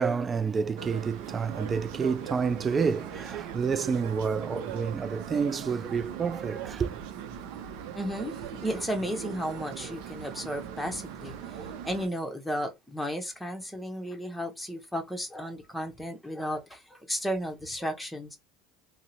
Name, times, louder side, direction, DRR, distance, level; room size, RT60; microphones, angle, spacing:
voice 1, 0.0-7.0, right 5 dB, 30° right, 0.4 m, -29 dB
sound 1, 0.8-12.1, right 9 dB, 75° right, 0.6 m, -40 dB
voice 2, 7.9-11.3 11.8-18.4, equal, 5° left, 1.0 m, -34 dB
2.7 x 2.1 x 4.0 m
supercardioid pair, 95°, 0 cm